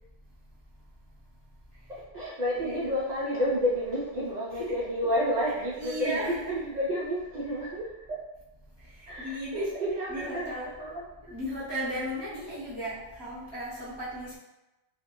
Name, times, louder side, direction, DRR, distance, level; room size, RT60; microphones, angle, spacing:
voice 1, 2.1-8.2 9.1-11.0, equal, 70° right, -6 dB, 0.4 m, -30 dB
voice 2, 5.4-6.4 9.2-9.8 10.1-10.7 11.3-14.4, equal, 25° left, -9 dB, 0.7 m, -36 dB
2.2 x 2.1 x 2.9 m, 1.0 s
omnidirectional pair, 1.2 m